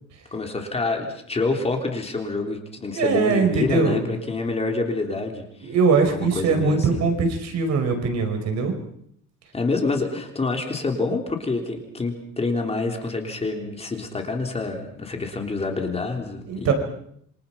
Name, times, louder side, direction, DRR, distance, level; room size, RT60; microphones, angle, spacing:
voice 1, 0.3-5.7 6.1-7.1 9.5-16.7, left 3 dB, 20° left, 3 dB, 3.7 m, -27 dB
voice 2, 2.9-4.0 5.6-8.7 16.5-16.7, right 4 dB, 55° right, 5 dB, 5.0 m, -21 dB
28.0 x 25.0 x 5.8 m, 0.69 s
cardioid pair, 140°, 32 cm